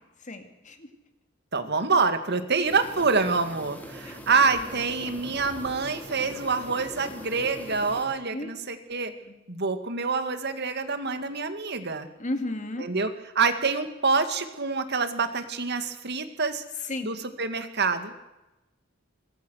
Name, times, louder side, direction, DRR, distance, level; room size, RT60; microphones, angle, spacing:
voice 1, 0.2-0.9 4.0-4.2 4.6-4.7 8.3-8.5 9.3-9.4 12.2-12.9 16.8-17.1, left 1 dB, 40° left, 6 dB, 2.7 m, -34 dB
voice 2, 1.5-9.1 9.5-12.1 12.8-13.1 13.4-16.6 17.0-18.2, right 4 dB, 55° right, 9 dB, 2.2 m, -26 dB
sound 1, 2.6-8.1, equal, 10° left, 4.3 m, -42 dB
25.0 x 22.0 x 6.6 m, 0.98 s
head